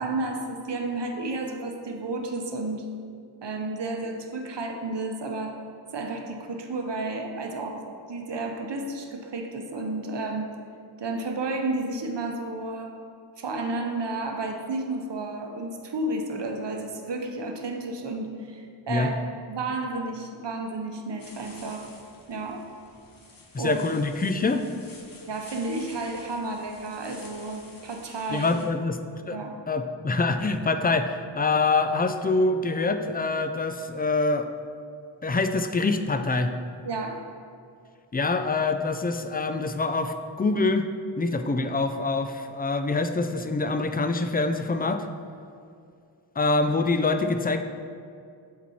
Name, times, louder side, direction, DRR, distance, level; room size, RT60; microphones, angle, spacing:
voice 1, 0.0-2.9 3.4-5.5 5.9-7.8 8.1-10.5 11.0-12.9 13.4-19.2 19.5-21.9 22.3-22.6 23.6-23.9 25.3-28.6 29.3-29.5 36.8-37.2, right 2 dB, 60° right, 3 dB, 0.8 m, -32 dB
sound 1, 21.2-28.7, left 2 dB, 45° left, 0.9 m, -50 dB
voice 2, 23.5-24.6 28.3-29.0 29.3-29.4 29.7-34.5 35.2-36.5 38.1-40.9 41.2-45.1 46.4-47.6, left 3 dB, 20° left, 8 dB, 0.3 m, -25 dB
7.2 x 4.3 x 4.2 m, 2.4 s
wide cardioid pair, 60°, 47 cm